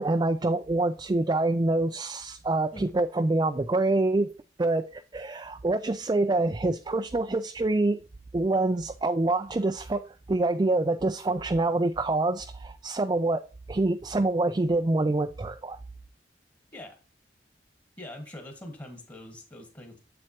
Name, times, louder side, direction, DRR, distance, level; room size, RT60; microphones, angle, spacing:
voice 1, 0.0-8.0 8.3-13.4 13.7-15.8, right 2 dB, 25° right, 0.4 m, -26 dB
voice 2, 18.0-20.0, left 1 dB, 20° left, 1.5 m, -43 dB
7.8 x 7.5 x 2.9 m
head